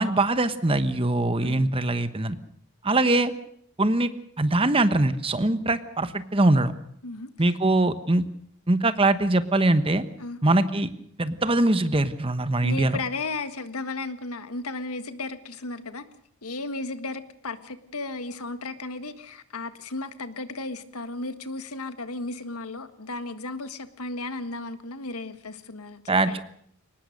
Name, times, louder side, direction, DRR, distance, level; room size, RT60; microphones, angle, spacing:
voice 1, 0.0-2.4 2.8-3.3 3.8-4.1 4.4-6.7 7.4-8.2 8.7-10.0 10.4-10.9 11.2-13.0 26.1-26.4, right 2 dB, 25° right, 11 dB, 1.1 m, -22 dB
voice 2, 7.0-7.5 10.2-10.4 12.6-16.0 16.4-26.4, left 3 dB, 85° left, 10 dB, 1.6 m, -35 dB
23.5 x 19.5 x 6.6 m, 0.65 s
head